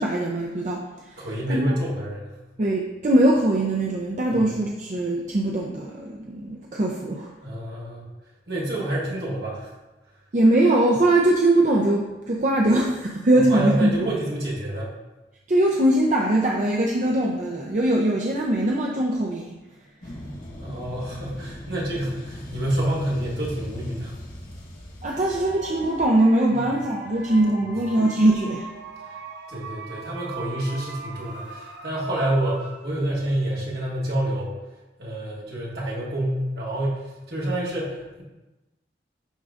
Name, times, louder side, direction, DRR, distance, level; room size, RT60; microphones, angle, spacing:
voice 1, 0.0-1.7 2.6-7.3 10.3-13.9 15.5-19.6 25.0-28.7, right 1 dB, 40° right, -1 dB, 0.5 m, -21 dB
voice 2, 1.2-2.4 4.3-4.5 7.4-8.0 8.5-9.7 13.3-14.9 20.5-24.1 26.5-26.7 29.5-34.5 35.0-38.2, right 1 dB, 65° right, -5 dB, 1.6 m, -28 dB
sound 1, 20.0-26.0, equal, 50° left, 1.4 m, -39 dB
sound 2, 25.1-33.2, right 3 dB, 85° right, 0.8 m, -40 dB
10.5 x 3.7 x 2.4 m, 1.1 s
head